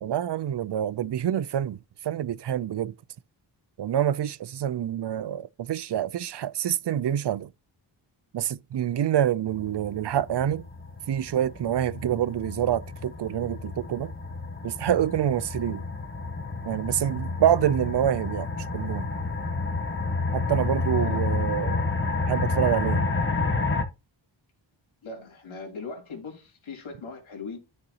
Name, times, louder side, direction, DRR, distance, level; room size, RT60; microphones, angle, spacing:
voice 1, 0.0-1.8 2.0-2.9 3.8-7.5 8.3-10.7 11.1-14.1 14.6-15.8 16.6-18.5 18.7-19.1 20.3-21.9 22.3-23.1, right 10 dB, 60° right, 0.5 m, -26 dB
sound 1, 9.5-23.8, left 3 dB, 25° left, 1.4 m, -30 dB
voice 2, 20.9-21.4 25.0-27.6, left 4 dB, 85° left, 3.3 m, -39 dB
10.0 x 6.6 x 2.9 m
cardioid pair, 75°, 47 cm